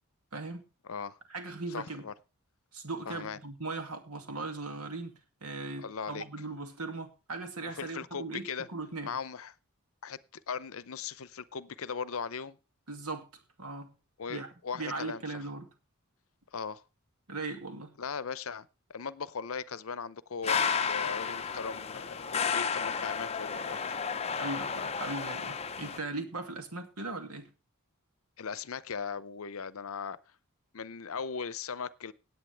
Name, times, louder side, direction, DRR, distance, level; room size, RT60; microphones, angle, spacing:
voice 1, 0.3-0.7 1.3-2.1 2.7-9.1 12.9-13.3 13.6-13.9 14.3-14.5 14.7-15.7 17.3-18.0 24.3-27.5, right 3 dB, 80° right, 2.4 m, -39 dB
voice 2, 0.8-1.2 1.7-2.1 3.1-3.4 5.8-6.2 7.6-8.7 9.0-9.5 10.0-12.6 14.2-15.4 16.5-16.8 18.0-24.0 28.4-30.2 30.7-32.1, left 6 dB, 65° left, 0.7 m, -38 dB
sound 1, 20.4-26.0, left 6 dB, 30° left, 0.6 m, -32 dB
17.5 x 8.4 x 3.4 m
head